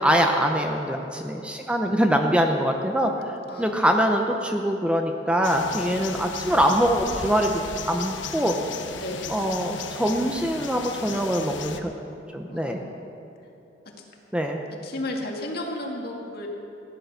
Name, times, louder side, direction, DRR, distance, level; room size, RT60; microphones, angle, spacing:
voice 1, 0.0-3.1 3.6-8.5 9.3-11.9 12.3-12.8 14.3-14.6, equal, 5° right, 3 dB, 0.7 m, -23 dB
voice 2, 3.5-4.0 5.7-6.2 9.0-9.3 12.5-13.0 13.9-14.0 14.8-16.5, left 1 dB, 55° left, 0 dB, 2.0 m, -34 dB
sound 1, 5.4-11.8, left 5 dB, 75° left, 0.9 m, -36 dB
16.0 x 10.5 x 6.6 m, 2.7 s
head